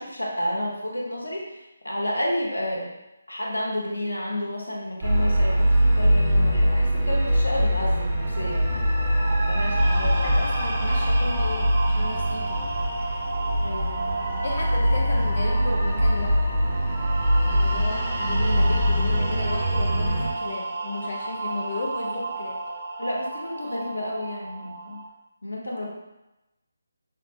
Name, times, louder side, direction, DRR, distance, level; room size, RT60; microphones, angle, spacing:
voice 1, 0.0-2.9 3.3-10.3 13.6-14.0 23.0-25.0 25.4-25.9, left 1 dB, 80° left, -3 dB, 1.0 m, -31 dB
sound 1, 5.0-20.3, equal, 20° right, 0.9 m, -23 dB
sound 2, 9.8-25.1, right 3 dB, 35° right, 0.5 m, -34 dB
voice 2, 9.9-12.7 14.4-16.4 17.5-22.6, left 2 dB, 55° left, -1 dB, 0.5 m, -34 dB
5.5 x 2.1 x 2.7 m, 0.98 s
figure-of-eight pair, 150°, 0 cm